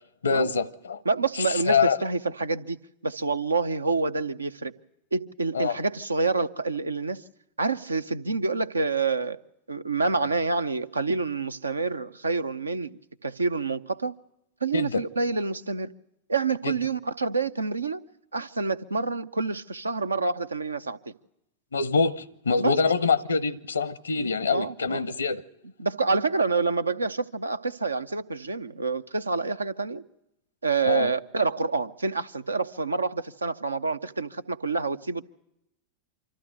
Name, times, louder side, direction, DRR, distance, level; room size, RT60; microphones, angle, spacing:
voice 1, 0.2-1.0 1.4-2.0 5.5-5.8 14.7-15.0 16.6-16.7 21.7-25.4 30.8-31.1, left 5 dB, 70° left, 0.7 m, -25 dB
voice 2, 1.1-2.8 3.0-4.7 5.1-7.2 7.6-9.4 9.7-14.1 14.6-15.9 16.3-18.0 18.3-21.1 22.6-22.7 24.1-25.1 25.8-30.0 30.6-35.2, right 4 dB, 80° right, 0.7 m, -27 dB
25.5 x 14.0 x 7.7 m
figure-of-eight pair, 90°, 0 cm